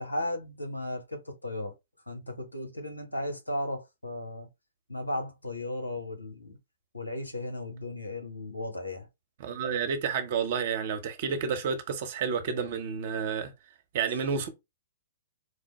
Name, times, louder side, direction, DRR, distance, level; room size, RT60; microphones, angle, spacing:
voice 1, 0.0-1.7 2.1-4.5 4.9-6.6 6.9-9.1, left 1 dB, 85° left, 1.2 m, -35 dB
voice 2, 9.4-13.5 13.9-14.5, right 6 dB, 50° right, 0.9 m, -30 dB
4.7 x 2.1 x 3.0 m
figure-of-eight pair, 115°, 0 cm